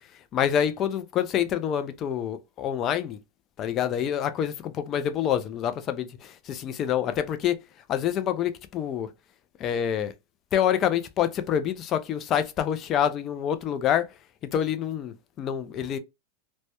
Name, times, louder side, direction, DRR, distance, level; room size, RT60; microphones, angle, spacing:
voice 1, 0.3-3.2 3.6-7.6 7.9-9.1 9.6-10.1 10.5-14.1 14.5-16.0, left 9 dB, 35° left, 0.3 m, -27 dB
2.1 x 2.1 x 2.8 m
supercardioid pair, 130°, 0 cm